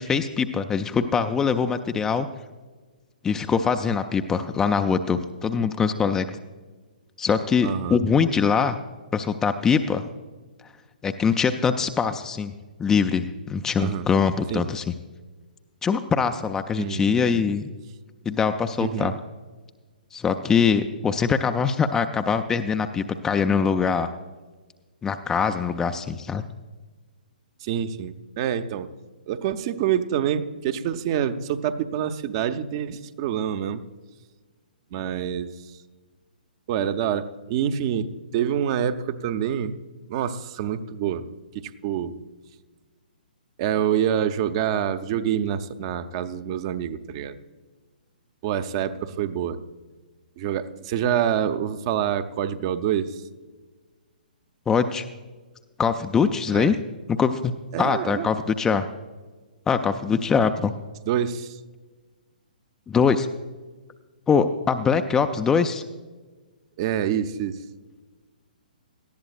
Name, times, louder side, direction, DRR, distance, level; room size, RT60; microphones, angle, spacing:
voice 1, 0.0-2.3 3.2-6.3 7.2-8.8 9.1-10.0 11.0-12.5 12.8-14.9 15.8-17.7 18.3-19.1 20.1-24.1 25.0-26.4 54.7-55.0 55.8-56.8 57.1-57.5 57.8-58.9 59.7-60.7 62.9-63.3 64.3-65.8, left 6 dB, 10° left, 8 dB, 0.4 m, -23 dB
voice 2, 7.6-8.0 13.8-14.1 14.5-14.6 16.8-17.4 18.8-19.2 27.6-28.9 29.3-33.8 34.9-35.5 36.7-39.8 40.1-41.3 41.5-42.2 43.6-47.4 48.4-49.6 50.4-53.2 56.5-56.7 57.7-58.3 61.0-61.6 66.8-67.6, right 9 dB, 35° right, 10 dB, 0.7 m, -26 dB
18.5 x 13.5 x 2.4 m, 1.3 s
figure-of-eight pair, 125°, 5 cm